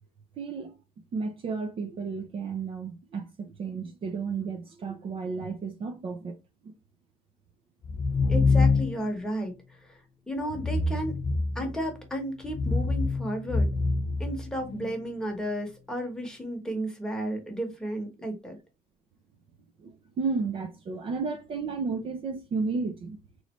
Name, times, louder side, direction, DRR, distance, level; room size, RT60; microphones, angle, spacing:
voice 1, 0.4-0.8 1.1-6.3 11.6-11.7 19.8-23.2, right 4 dB, 40° right, 0.6 m, -33 dB
sound 1, 7.8-9.1 10.5-11.9 12.4-14.9, left 3 dB, 35° left, 0.5 m, -26 dB
voice 2, 8.3-10.0 10.3-11.1 11.5-13.7 14.2-18.6, right 1 dB, 5° left, 1.2 m, -33 dB
3.9 x 3.1 x 3.1 m
cardioid pair, 155°, 14 cm